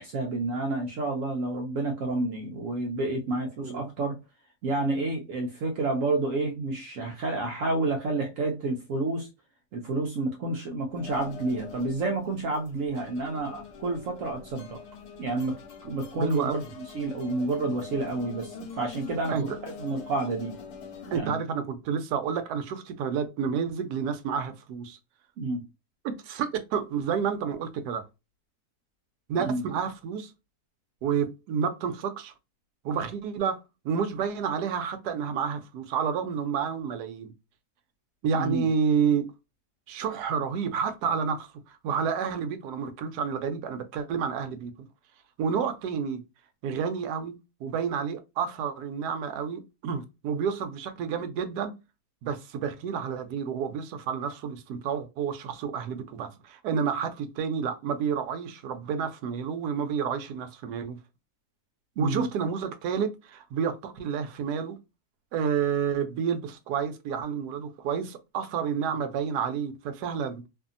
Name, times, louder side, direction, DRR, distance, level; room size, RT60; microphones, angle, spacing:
voice 1, 0.0-4.2 4.6-9.3 9.7-14.8 15.2-16.6 16.9-19.5 19.8-20.5 21.1-21.4 25.4-25.6 29.5-29.6 38.3-38.7 62.0-62.3, right 2 dB, 65° right, 0.9 m, -29 dB
sound 1, 10.9-21.2, left 5 dB, 80° left, 1.2 m, -44 dB
voice 2, 16.2-16.7 19.3-19.6 21.1-25.0 26.0-28.0 29.3-30.3 31.0-32.3 32.8-33.6 33.8-37.3 38.2-39.3 39.9-44.9 45.4-46.2 46.6-47.3 47.6-51.7 52.2-61.0 62.0-64.8 65.3-70.4, right 7 dB, 85° right, 1.1 m, -30 dB
2.7 x 2.6 x 2.4 m
omnidirectional pair, 1.7 m